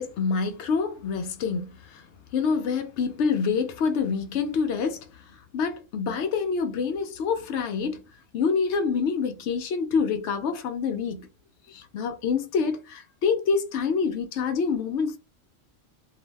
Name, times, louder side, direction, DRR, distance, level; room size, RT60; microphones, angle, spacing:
voice 1, 0.0-2.1 2.3-5.2 5.5-8.0 8.3-11.3 11.7-15.2, left 5 dB, 70° left, 0.8 m, -26 dB
2.6 x 2.1 x 3.2 m
omnidirectional pair, 1.3 m